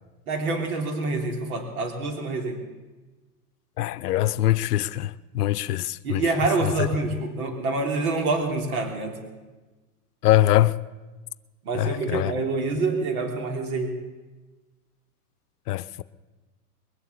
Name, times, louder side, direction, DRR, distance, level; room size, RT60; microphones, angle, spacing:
voice 1, 0.3-2.6 6.0-9.2 11.7-14.0, right 3 dB, 65° right, 3.3 m, -26 dB
voice 2, 3.8-6.2 10.2-10.7 11.7-12.3 15.7-16.0, left 14 dB, 80° left, 0.7 m, -23 dB
21.5 x 7.9 x 8.3 m
supercardioid pair, 150°, 46 cm